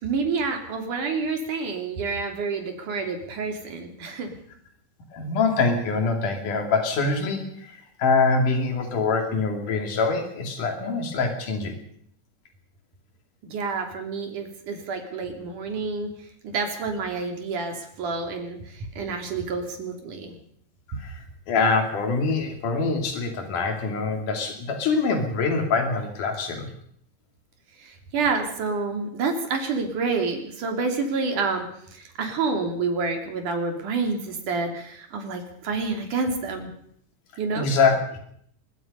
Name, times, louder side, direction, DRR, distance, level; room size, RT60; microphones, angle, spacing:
voice 1, 0.0-4.3 13.4-20.3 27.8-31.7 31.9-36.7 37.4-37.7, right 4 dB, 75° right, 4 dB, 4.6 m, -28 dB
voice 2, 5.1-11.7 20.9-26.7 37.6-38.2, left 4 dB, 75° left, 3 dB, 4.2 m, -24 dB
23.0 x 21.5 x 5.5 m, 0.66 s
omnidirectional pair, 3.7 m